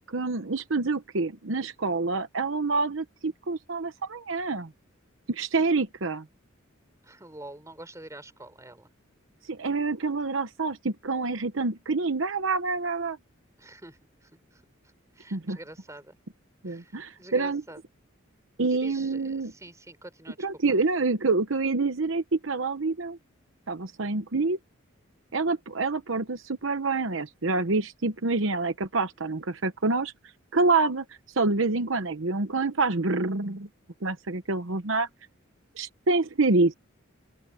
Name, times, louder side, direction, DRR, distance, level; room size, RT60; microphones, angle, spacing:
voice 1, 0.0-4.7 5.3-6.2 9.5-13.2 15.3-15.6 16.6-17.6 18.6-19.5 20.4-23.2 23.7-24.6 25.3-30.1 30.5-31.0 31.4-33.7 34.0-35.1 35.8-36.7, right 3 dB, 70° right, 1.0 m, -27 dB
voice 2, 7.0-8.9 13.6-14.6 15.1-16.2 16.6-17.8 18.7-20.5, right 1 dB, 15° right, 4.1 m, -46 dB
open air
head